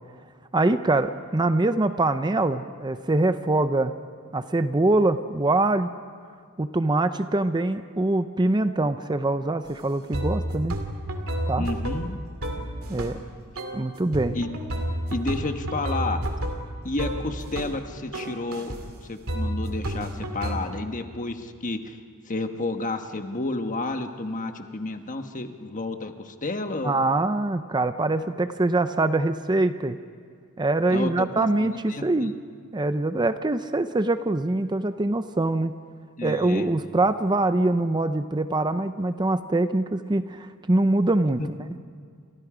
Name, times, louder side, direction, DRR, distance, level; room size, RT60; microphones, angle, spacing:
voice 1, 0.5-3.9 4.3-5.9 6.6-10.8 11.5-11.7 12.9-13.2 13.7-14.4 26.8-30.0 30.6-32.3 32.7-35.7 36.2-41.4, right 2 dB, 20° right, 10 dB, 0.6 m, -24 dB
sound 1, 9.7-9.8 10.1-13.2 13.6-13.8 14.1-17.8 18.1-18.8 19.3-20.6, right 1 dB, 70° right, 2.6 m, -31 dB
voice 2, 11.6-12.2 14.3-14.5 15.1-16.2 16.8-18.7 19.1-22.0 22.3-26.9 30.9-32.3 36.2-36.7 41.4-41.5, left 2 dB, 35° left, 6 dB, 1.3 m, -31 dB
30.0 x 27.5 x 5.0 m, 2.1 s
head